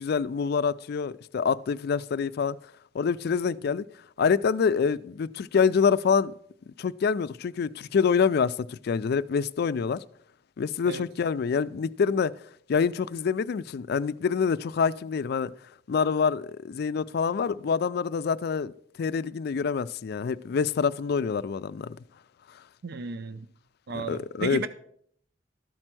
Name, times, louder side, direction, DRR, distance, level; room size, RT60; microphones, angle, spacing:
voice 1, 0.0-2.6 2.9-3.8 4.2-6.3 6.8-10.0 10.6-12.3 12.7-15.5 15.9-18.7 19.0-22.0 23.9-24.6, left 6 dB, 60° left, 0.4 m, -26 dB
voice 2, 22.8-23.5 23.9-24.7, right 4 dB, 60° right, 0.6 m, -34 dB
13.0 x 4.4 x 6.0 m
head